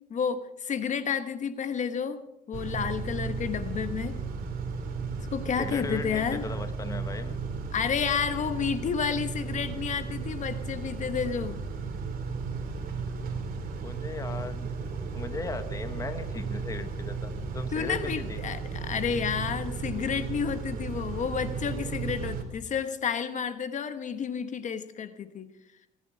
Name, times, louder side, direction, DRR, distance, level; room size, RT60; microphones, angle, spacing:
voice 1, 0.1-2.2 2.5-4.1 5.3-6.4 7.7-11.6 17.7-25.5, left 7 dB, 45° left, 11 dB, 1.2 m, -30 dB
Car / Idling / Accelerating revving vroom, 2.5-22.4, right 5 dB, 60° right, 3.1 m, -35 dB
voice 2, 5.6-7.4 13.7-14.7 15.1-18.4, left 3 dB, 20° left, 9 dB, 1.1 m, -37 dB
20.5 x 10.5 x 5.6 m, 0.85 s
cardioid pair, 110°, 17 cm